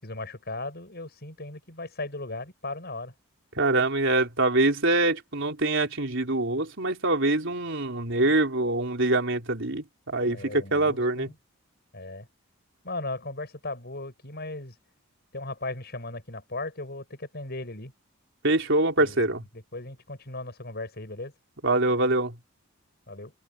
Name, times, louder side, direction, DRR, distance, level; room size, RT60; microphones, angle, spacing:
voice 1, 0.0-3.1 10.3-11.4 11.9-12.3 12.8-14.7 15.3-17.9 19.0-19.2 19.5-21.3 23.1-23.3, left 2 dB, 50° left, 7.1 m, -37 dB
voice 2, 3.6-11.3 18.4-19.4 21.6-22.3, right 2 dB, 60° right, 4.1 m, -24 dB
head